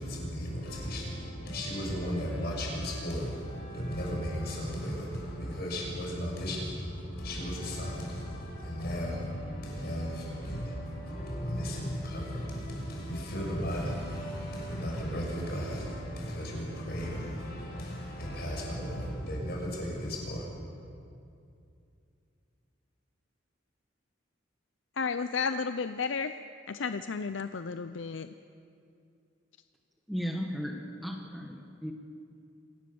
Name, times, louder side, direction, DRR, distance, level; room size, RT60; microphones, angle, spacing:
voice 1, 0.0-20.5, equal, 55° left, -2 dB, 6.6 m, -35 dB
voice 2, 25.0-26.4 26.7-28.3, left 5 dB, 75° left, 10 dB, 0.6 m, -32 dB
voice 3, 30.1-31.9, equal, ahead, 2 dB, 1.5 m, -35 dB
26.5 x 18.5 x 7.1 m, 2.5 s
head